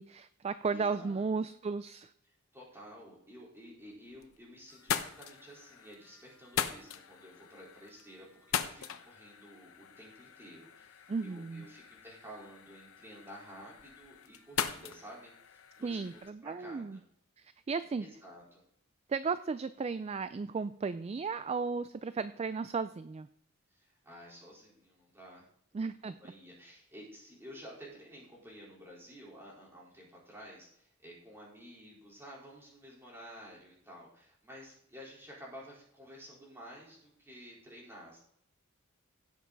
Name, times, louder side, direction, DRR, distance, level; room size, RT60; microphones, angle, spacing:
voice 1, 0.0-2.1 11.1-11.7 15.8-17.0 17.4-18.0 19.1-23.3 25.7-26.2, right 4 dB, 30° right, 13 dB, 0.3 m, -35 dB
voice 2, 0.7-1.5 2.5-17.0 18.0-18.6 23.7-25.5 26.0-38.2, equal, 10° right, -5 dB, 4.1 m, -52 dB
sound 1, 3.8-4.4 4.7-16.3, left 8 dB, 75° left, 0.9 m, -41 dB
17.0 x 7.1 x 4.0 m, 0.73 s
head